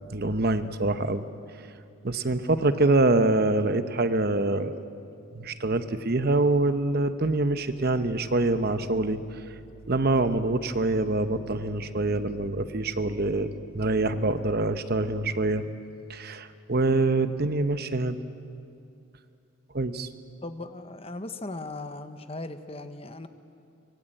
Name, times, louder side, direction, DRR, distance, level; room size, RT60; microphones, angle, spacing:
voice 1, 0.1-1.2 2.0-4.8 5.3-9.2 9.9-15.7 16.1-18.2 19.7-20.1, right 2 dB, 45° right, 11 dB, 0.9 m, -25 dB
voice 2, 20.4-23.3, left 2 dB, 25° left, 9 dB, 1.0 m, -38 dB
25.0 x 21.0 x 9.0 m, 2.5 s
head